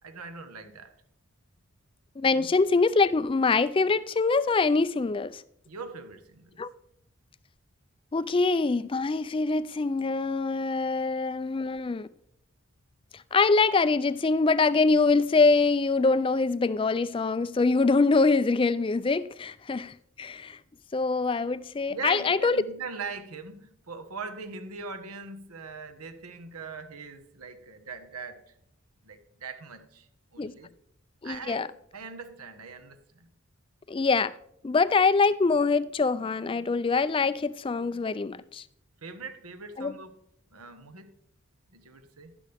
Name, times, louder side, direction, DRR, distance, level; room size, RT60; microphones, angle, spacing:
voice 1, 0.0-0.9 2.3-2.7 5.7-6.6 21.9-28.6 29.0-30.7 31.2-33.3 39.0-40.1 40.5-41.1 41.7-42.3, right 4 dB, 85° right, 1.2 m, -41 dB
voice 2, 2.2-5.4 6.6-6.7 8.1-12.1 13.1-20.6 20.9-22.6 30.4-30.5 31.2-31.7 33.9-34.3 34.6-38.6 39.8-39.9, left 4 dB, 25° left, 0.3 m, -24 dB
11.5 x 11.5 x 3.5 m
head